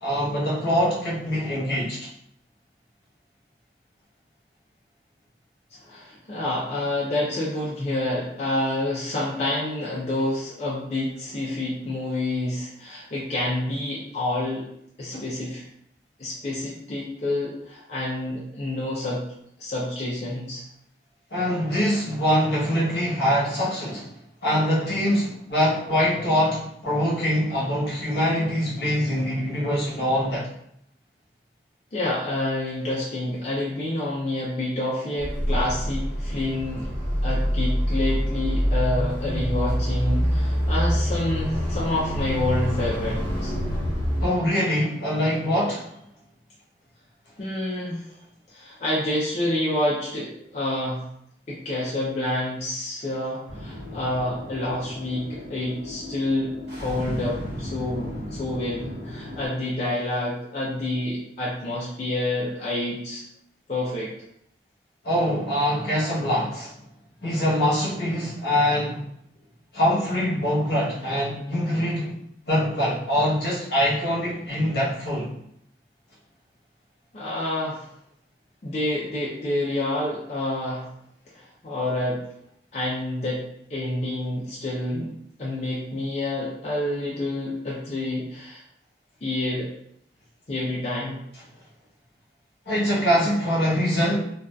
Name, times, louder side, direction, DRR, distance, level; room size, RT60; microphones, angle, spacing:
voice 1, 0.0-2.1 15.1-15.2 21.3-24.1 24.4-30.5 44.2-45.9 65.0-66.7 67.2-69.0 69.7-72.2 72.5-75.3 92.7-94.2, equal, 65° left, -6 dB, 0.9 m, -24 dB
voice 2, 5.8-14.7 15.0-15.6 16.2-19.3 19.6-20.6 31.9-36.9 37.2-43.5 47.4-48.0 48.5-51.0 51.5-63.2 63.7-64.1 77.1-77.9 78.6-80.9 81.3-82.2 82.7-83.4 83.7-85.1 85.4-88.6 89.2-89.7 90.5-91.2, left 1 dB, 40° left, -7 dB, 0.4 m, -28 dB
sound 1, 35.2-44.3, equal, 15° right, 1.1 m, -25 dB
sound 2, 53.5-59.5, left 1 dB, 75° right, 0.7 m, -36 dB
2.6 x 2.3 x 2.2 m, 0.72 s
head